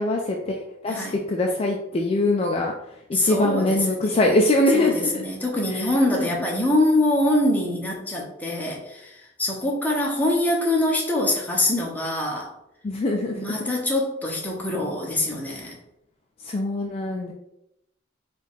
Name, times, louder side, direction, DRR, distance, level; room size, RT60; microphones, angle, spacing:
voice 1, 0.0-2.7 3.1-5.2 5.7-6.3 12.8-13.4 15.4-15.6 16.4-17.3, left 1 dB, 30° left, 1 dB, 0.3 m, -23 dB
voice 2, 0.9-1.2 3.1-4.3 4.7-12.5 13.3-15.7, left 1 dB, 10° left, -2 dB, 0.8 m, -24 dB
4.5 x 2.4 x 3.5 m, 0.83 s
head